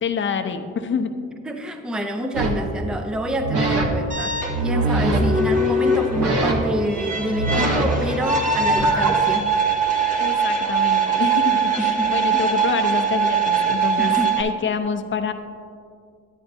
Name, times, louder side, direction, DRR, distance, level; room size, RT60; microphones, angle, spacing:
voice 1, 0.0-1.1 10.2-15.3, left 6 dB, 40° left, 7 dB, 0.7 m, -26 dB
voice 2, 1.4-9.5 11.8-12.4 14.0-14.4, equal, 5° right, 5 dB, 0.5 m, -27 dB
sound 1, 2.3-2.6 3.3-3.9 4.3-5.2 6.0-6.8 7.2-9.1, right 2 dB, 50° right, 1.2 m, -24 dB
sound 2, 4.1-14.4, right 4 dB, 25° right, 1.1 m, -22 dB
9.8 x 9.3 x 2.7 m, 2.3 s
cardioid pair, 90°, 30 cm